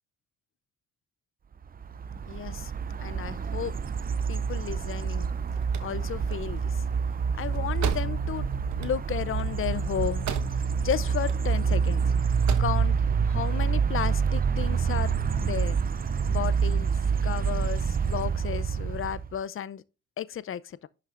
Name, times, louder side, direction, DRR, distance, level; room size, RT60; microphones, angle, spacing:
sound 1, 1.8-19.3, right 6 dB, 30° right, 0.6 m, -27 dB
voice 1, 2.3-2.7 3.0-3.7 4.3-5.3 5.8-6.8 7.4-8.5 8.8-12.0 12.6-12.9 13.2-15.1 15.4-15.8 16.3-16.9 17.2-19.8 20.2-20.9, left 9 dB, 45° left, 0.6 m, -33 dB
sound 2, 5.5-10.9 11.1-11.9 12.3-12.8, right 7 dB, 70° right, 1.3 m, -36 dB
11.0 x 6.5 x 2.5 m
cardioid pair, 90°, 30 cm